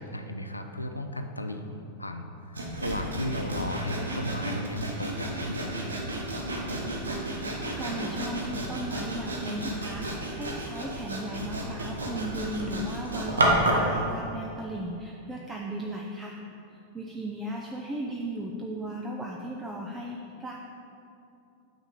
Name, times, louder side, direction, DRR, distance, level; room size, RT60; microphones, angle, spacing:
voice 1, 0.0-5.9, left 1 dB, 85° left, 6 dB, 0.5 m, -35 dB
Sawing, 2.5-13.9, right 1 dB, 75° right, 1.0 m, -31 dB
voice 2, 7.8-16.4 16.7-20.6, right 1 dB, 15° right, -1 dB, 0.6 m, -36 dB
9.0 x 4.9 x 4.1 m, 2.6 s
figure-of-eight pair, 90°, 0 cm